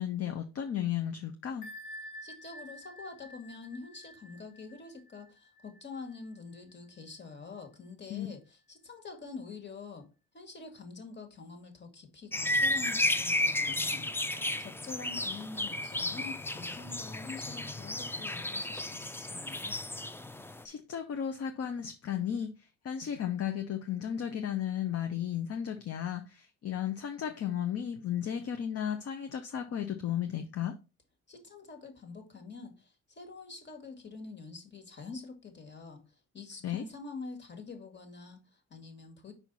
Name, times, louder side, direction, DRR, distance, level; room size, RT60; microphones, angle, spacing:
voice 1, 0.0-1.7 8.1-8.3 20.6-22.5 22.8-30.8 36.6-36.8, left 9 dB, 50° left, 0.8 m, -34 dB
Bell, 1.6-7.0, equal, 80° left, 1.2 m, -50 dB
voice 2, 2.2-10.1 10.3-14.1 14.6-19.8 31.3-36.0 36.3-39.3, left 4 dB, 35° left, 2.0 m, -46 dB
sound 1, 12.3-20.6, left 1 dB, 10° left, 0.4 m, -33 dB
5.5 x 4.6 x 4.1 m
cardioid pair, 90°, 30 cm